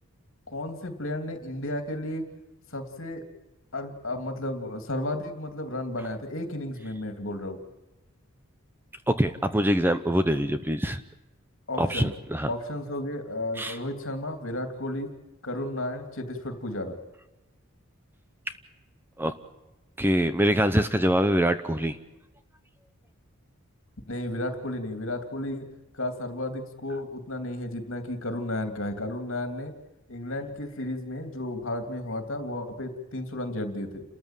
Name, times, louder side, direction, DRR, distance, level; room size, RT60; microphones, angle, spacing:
voice 1, 0.5-2.2 2.7-3.2 3.7-7.6 11.7-12.1 12.5-15.1 15.4-17.0 24.1-25.7 25.9-29.7 30.1-34.0, left 1 dB, 65° left, 6 dB, 2.9 m, -33 dB
voice 2, 9.1-11.0 11.8-12.5 13.6-13.8 19.2-19.3 20.0-22.0, equal, 10° right, 10 dB, 0.8 m, -24 dB
29.5 x 14.0 x 9.1 m, 1.0 s
head